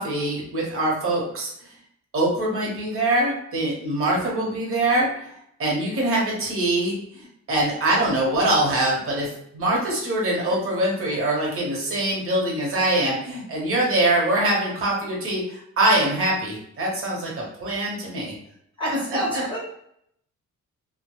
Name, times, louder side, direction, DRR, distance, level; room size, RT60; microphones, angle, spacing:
voice 1, 0.0-1.5 2.1-5.3 5.6-9.3 9.5-18.3 18.9-19.4, right 1 dB, 45° right, -3 dB, 0.9 m, -23 dB
voice 2, 18.8-19.6, right 1 dB, 15° left, -5 dB, 0.8 m, -27 dB
2.1 x 2.0 x 2.9 m, 0.73 s
cardioid pair, 145°, 30 cm